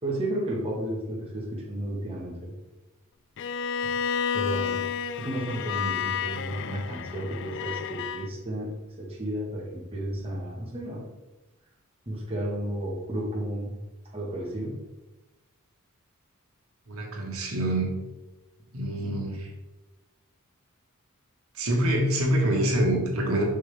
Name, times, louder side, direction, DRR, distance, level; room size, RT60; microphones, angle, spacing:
voice 1, 0.0-2.5 3.8-3.9 4.3-4.8 5.1-8.7 9.0-11.0 12.0-13.7 14.1-14.7, right 1 dB, 25° right, -4 dB, 1.5 m, -32 dB
Bowed string instrument, 3.4-8.3, left 7 dB, 55° left, 0.3 m, -31 dB
voice 2, 16.9-17.9 18.7-19.5 21.5-23.4, right 1 dB, 75° right, 0 dB, 1.6 m, -25 dB
7.5 x 5.6 x 3.5 m, 1.1 s
head